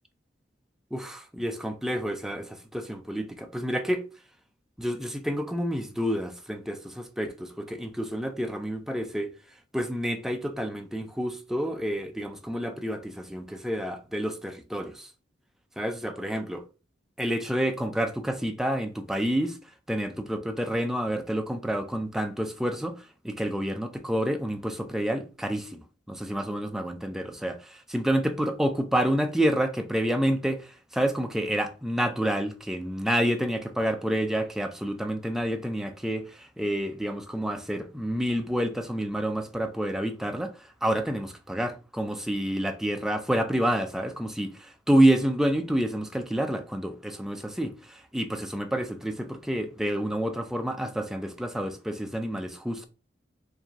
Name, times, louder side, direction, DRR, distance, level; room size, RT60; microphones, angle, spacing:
voice 1, 0.9-4.0 4.8-9.3 9.7-15.1 15.8-16.7 17.2-19.6 19.9-52.9, equal, ahead, 0.4 m, -29 dB
4.6 x 2.7 x 2.9 m
head